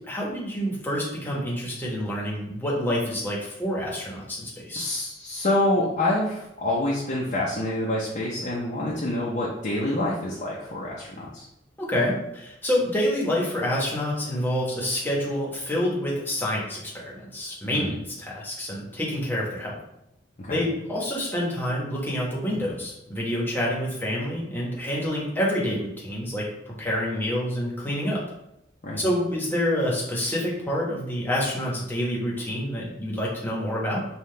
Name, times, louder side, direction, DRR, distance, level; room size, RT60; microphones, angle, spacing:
voice 1, 0.1-4.9 11.8-19.7 20.5-28.2 29.0-34.0, equal, 10° left, -5 dB, 1.0 m, -27 dB
voice 2, 4.8-11.5 17.7-17.9 20.4-20.6 28.8-29.0, left 1 dB, 40° left, -5 dB, 0.7 m, -27 dB
5.6 x 2.4 x 3.2 m, 0.84 s
head